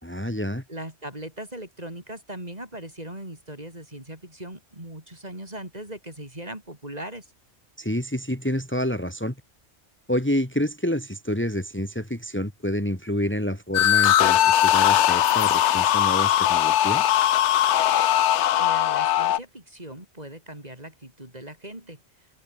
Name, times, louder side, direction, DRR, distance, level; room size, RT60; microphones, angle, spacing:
voice 1, 0.0-0.6 7.8-9.3 10.1-17.2, equal, 10° left, 2.7 m, -28 dB
voice 2, 0.7-7.3 18.6-22.0, right 1 dB, 35° right, 5.6 m, -39 dB
sound 1, 13.7-19.4, left 11 dB, 80° left, 1.0 m, -20 dB
omnidirectional pair, 1.2 m